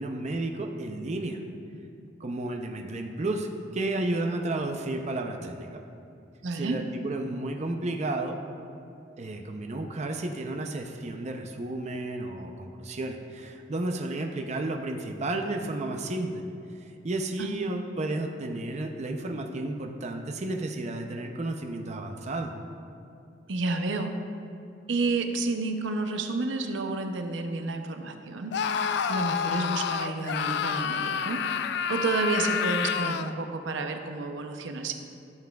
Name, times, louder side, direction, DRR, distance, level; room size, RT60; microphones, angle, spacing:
voice 1, 0.0-1.4 2.2-3.5 3.7-5.8 6.5-8.4 9.2-16.4 17.0-22.5, right 2 dB, 40° right, 4 dB, 0.5 m, -32 dB
voice 2, 6.4-6.8 17.4-17.5 23.5-24.1 24.9-28.6 29.1-31.4 31.9-34.9, right 3 dB, 90° right, 6 dB, 0.6 m, -30 dB
Screaming, 28.5-33.4, left 7 dB, 65° left, 0.3 m, -29 dB
12.5 x 7.2 x 2.3 m, 2.6 s
head